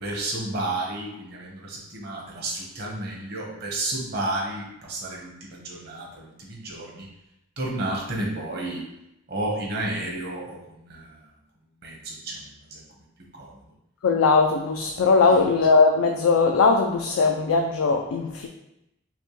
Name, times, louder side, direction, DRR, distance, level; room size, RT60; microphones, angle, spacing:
voice 1, 0.0-7.1 7.6-8.8 9.3-10.6 10.9-11.2 11.8-12.4 12.7-12.8 13.3-13.5 15.3-15.5, right 2 dB, 50° right, -2 dB, 0.9 m, -31 dB
voice 2, 14.0-18.5, left 4 dB, 85° left, 2 dB, 0.4 m, -20 dB
5.7 x 2.2 x 3.0 m, 0.85 s
head